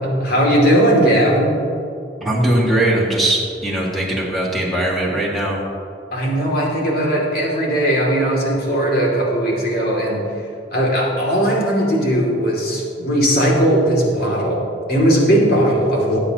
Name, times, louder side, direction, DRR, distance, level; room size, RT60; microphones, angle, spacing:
voice 1, 0.0-1.6 6.1-10.2 10.7-14.6 14.9-16.2, right 1 dB, 55° left, -2 dB, 2.7 m, -18 dB
voice 2, 2.2-5.6, right 1 dB, ahead, -5 dB, 2.1 m, -20 dB
18.0 x 8.8 x 3.0 m, 2.5 s
head